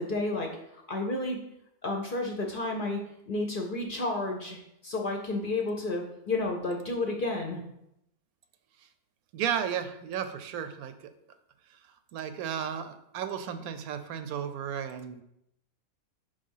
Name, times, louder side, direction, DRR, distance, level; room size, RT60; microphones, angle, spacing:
voice 1, 0.0-1.4 1.8-3.0 3.3-7.6, left 2 dB, 50° left, 2 dB, 0.7 m, -31 dB
voice 2, 9.3-11.1 12.1-15.2, right 8 dB, 85° right, 10 dB, 1.0 m, -34 dB
5.3 x 3.4 x 5.4 m, 0.81 s
omnidirectional pair, 1.5 m